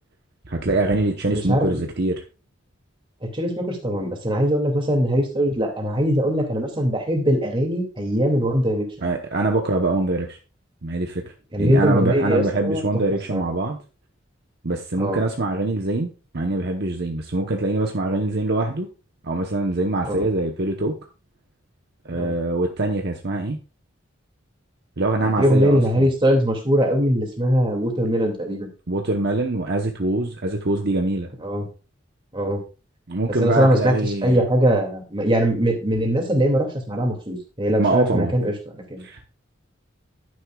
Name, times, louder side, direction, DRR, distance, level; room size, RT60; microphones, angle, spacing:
voice 1, 0.5-2.2 9.0-10.4 10.8-11.2 11.6-13.8 14.6-18.9 19.2-21.0 22.0-23.6 25.0-25.8 28.9-31.3 33.1-34.4 37.8-38.3 39.0-39.3, right 2 dB, 55° right, 3 dB, 1.0 m, -23 dB
voice 2, 1.3-1.7 3.2-9.1 11.5-12.8 13.3-13.4 15.0-15.2 20.1-20.2 22.2-22.3 25.2-28.7 31.4-31.7 32.3-32.6 33.4-39.0, equal, 25° right, 2 dB, 2.5 m, -21 dB
11.5 x 9.6 x 2.4 m, 0.32 s
head